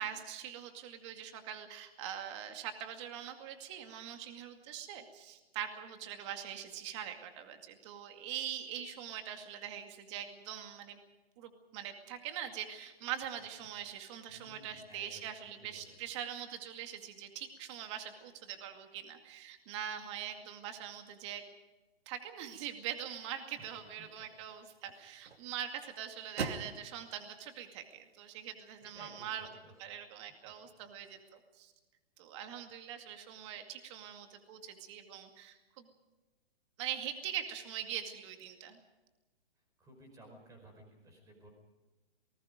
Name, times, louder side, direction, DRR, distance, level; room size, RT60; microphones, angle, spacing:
voice 1, 0.0-11.0 11.4-21.4 22.1-29.5 29.8-31.7 32.2-35.9 36.8-38.8, right 10 dB, 30° right, 6 dB, 2.3 m, -43 dB
voice 2, 13.6-13.9 14.3-15.3 15.6-16.0 23.6-24.3 24.9-25.4 28.8-29.9 30.4-30.5 31.1-31.2 39.8-41.5, right 1 dB, 10° right, 4 dB, 5.1 m, -57 dB
sound 1, 22.8-29.0, right 4 dB, 85° right, 2.6 m, -47 dB
28.0 x 20.0 x 5.1 m, 1.1 s
hypercardioid pair, 160°, 30 cm